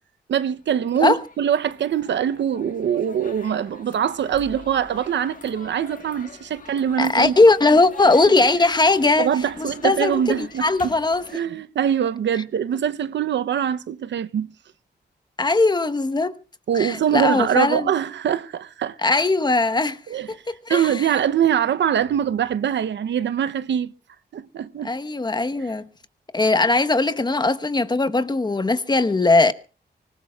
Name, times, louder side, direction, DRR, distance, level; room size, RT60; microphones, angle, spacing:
voice 1, 0.3-7.3 9.2-10.9 11.3-14.5 16.7-19.0 20.1-20.3 20.7-23.9 24.3-24.9 25.6-25.7, right 9 dB, 85° right, 0.8 m, -23 dB
sound 1, 0.6-11.4, left 5 dB, 50° left, 1.6 m, -44 dB
voice 2, 7.0-9.3 9.6-11.2 15.4-16.3 16.7-17.9 19.0-20.0 20.3-20.4 20.7-21.1 24.8-25.9 26.3-29.5, left 3 dB, 25° left, 1.1 m, -19 dB
25.0 x 20.5 x 2.4 m
wide cardioid pair, 120°, 18 cm